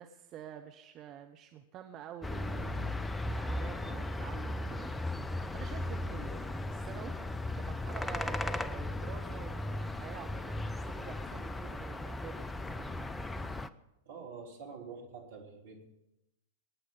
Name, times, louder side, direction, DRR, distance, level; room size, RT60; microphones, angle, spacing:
voice 1, 0.0-4.9 5.2-7.1 7.5-12.9, right 9 dB, 35° right, 6 dB, 1.0 m, -48 dB
sound 1, 2.2-13.7, left 2 dB, 10° left, 0.6 m, -37 dB
voice 2, 14.0-15.9, right 5 dB, 60° right, 1 dB, 3.2 m, -46 dB
22.0 x 9.5 x 5.7 m, 0.91 s
figure-of-eight pair, 95°, 0 cm